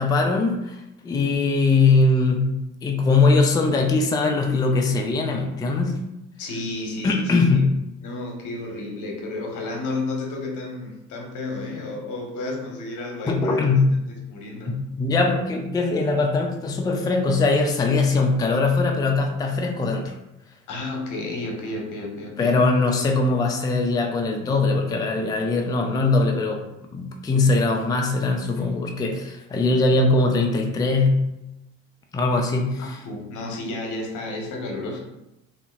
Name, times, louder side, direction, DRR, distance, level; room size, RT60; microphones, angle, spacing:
voice 1, 0.0-6.0 7.0-7.8 13.3-13.9 14.7-20.1 22.4-26.6 26.9-31.2 32.1-33.0, left 3 dB, 10° left, 2 dB, 0.4 m, -21 dB
voice 2, 6.4-7.6 8.0-14.8 20.7-22.5 32.8-35.0, left 2 dB, 55° left, 0 dB, 0.9 m, -32 dB
2.8 x 2.6 x 2.3 m, 0.89 s
hypercardioid pair, 65°, 36 cm